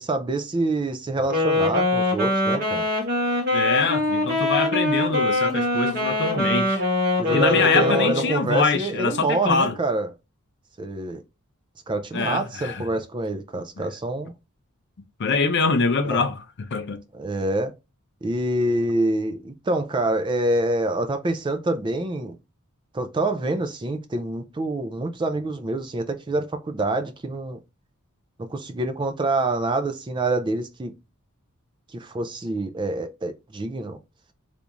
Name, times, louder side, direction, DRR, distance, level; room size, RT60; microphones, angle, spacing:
voice 1, 0.0-2.9 7.1-10.1 10.8-11.2 11.9-14.3 16.1-16.3 17.1-17.7 18.2-22.4 22.9-27.6 28.4-30.9 31.9-34.0, right 2 dB, 20° right, 0.3 m, -26 dB
Wind instrument woodwind instrument, 1.2-8.4, left 2 dB, 45° right, 1.3 m, -23 dB
voice 2, 3.5-6.9 7.3-9.8 12.1-12.8 15.2-17.0, left 4 dB, 55° left, 0.5 m, -24 dB
3.4 x 2.5 x 2.9 m
head